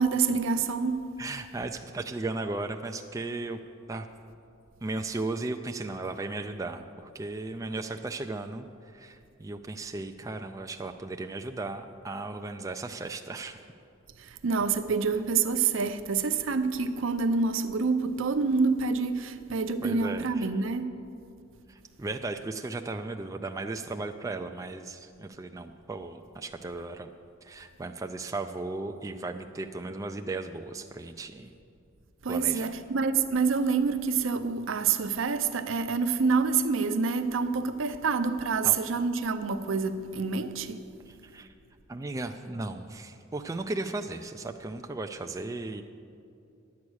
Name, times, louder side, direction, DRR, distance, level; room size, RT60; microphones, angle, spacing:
voice 1, 0.0-1.1 14.2-21.0 32.2-40.8, right 5 dB, 70° right, 0.6 m, -27 dB
voice 2, 1.2-3.6 3.9-4.1 4.8-13.6 19.8-20.5 21.7-27.1 27.4-31.5 32.3-32.7 38.6-38.7 41.1-41.5 41.9-45.8, right 2 dB, 15° right, 0.3 m, -36 dB
10.5 x 8.4 x 6.3 m
head